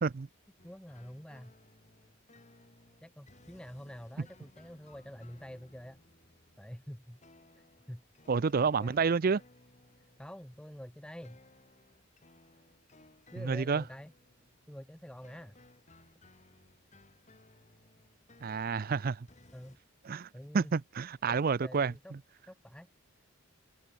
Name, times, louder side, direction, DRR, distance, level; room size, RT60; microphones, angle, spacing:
sound 1, 0.6-19.8, left 2 dB, 35° left, 3.3 m, -61 dB
voice 1, 0.6-1.5 3.0-6.0 6.6-7.2 7.6-8.0 8.4-8.5 8.8-9.1 10.2-11.4 13.3-14.1 14.7-15.6 19.5-19.8 20.3-20.7 21.3-22.1 22.5-22.9, equal, 5° left, 0.8 m, -47 dB
voice 2, 8.3-9.4 13.4-13.8 18.4-19.3 20.0-21.9, right 5 dB, 45° right, 0.4 m, -29 dB
head